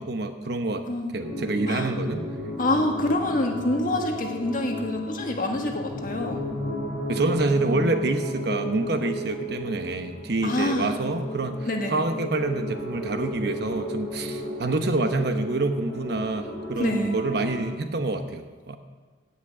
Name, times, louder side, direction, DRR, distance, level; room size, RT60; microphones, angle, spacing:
voice 1, 0.0-0.8 1.1-2.2 7.1-11.5 11.9-18.8, right 2 dB, 55° right, 7 dB, 1.0 m, -27 dB
voice 2, 0.9-1.2 1.7-1.9 2.6-6.4 10.4-10.9 11.7-11.9 16.8-17.2, left 1 dB, 45° left, 2 dB, 1.7 m, -26 dB
sound 1, 1.2-17.7, left 1 dB, ahead, 5.1 m, -34 dB
16.0 x 6.1 x 8.7 m, 1.5 s
head